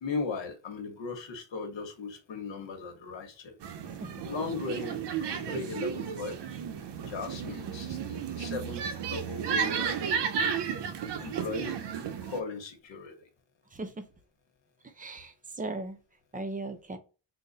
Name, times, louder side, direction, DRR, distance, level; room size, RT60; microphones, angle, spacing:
voice 1, 0.0-3.5 4.2-5.0 5.5-6.4 7.1-10.0 11.2-11.8 12.2-13.1, left 4 dB, 80° left, 1.2 m, -37 dB
sound 1, 3.6-12.4, right 7 dB, 65° right, 0.6 m, -33 dB
voice 2, 13.7-14.1 14.8-16.0 16.3-17.0, right 2 dB, 20° right, 0.5 m, -38 dB
3.8 x 2.1 x 3.9 m
wide cardioid pair, 165°, 44 cm